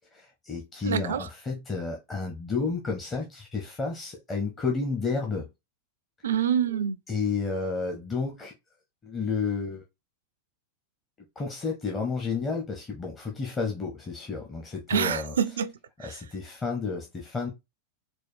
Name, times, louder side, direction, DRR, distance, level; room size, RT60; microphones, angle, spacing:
voice 1, 0.1-5.5 7.1-8.5 9.0-9.8 11.4-15.4 16.0-17.5, left 4 dB, 20° left, 1.0 m, -31 dB
voice 2, 0.8-1.3 6.2-7.0 14.9-15.7 16.0-16.2, right 8 dB, 65° right, 0.4 m, -26 dB
4.4 x 2.3 x 4.4 m
figure-of-eight pair, 90°, 0 cm